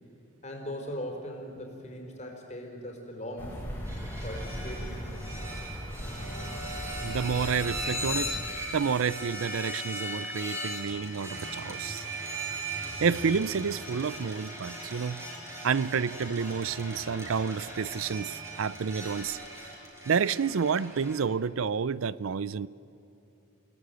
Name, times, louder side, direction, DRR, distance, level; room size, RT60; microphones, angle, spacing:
voice 1, 0.4-3.6 4.2-5.5, equal, 35° left, 1 dB, 4.6 m, -40 dB
sound 1, 3.4-8.5, equal, 10° left, 4.7 m, -38 dB
sound 2, 3.9-21.2, right 1 dB, 15° right, 5.3 m, -38 dB
voice 2, 7.0-8.4 8.7-12.1 13.0-15.2 15.6-19.4 20.1-22.7, right 6 dB, 70° right, 19 dB, 0.5 m, -29 dB
28.5 x 18.0 x 9.4 m, 2.9 s
head